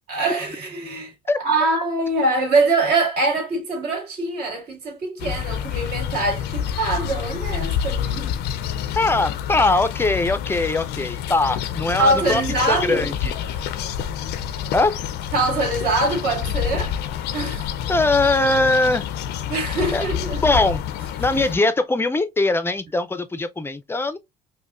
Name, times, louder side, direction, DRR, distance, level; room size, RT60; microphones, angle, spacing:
voice 1, 0.1-1.1 1.4-8.3 12.0-13.1 13.5-13.6 15.3-16.9 17.3-17.7 19.5-20.4, right 2 dB, 70° right, 2.1 m, -23 dB
sound 1, 5.2-21.6, left 9 dB, 80° left, 0.5 m, -28 dB
voice 2, 9.0-12.4 12.7-13.3 14.7-15.0 17.9-19.0 19.9-20.1 20.4-20.8 21.2-24.2, left 2 dB, 15° left, 0.4 m, -21 dB
5.2 x 2.2 x 2.4 m
cardioid pair, 110°, 17 cm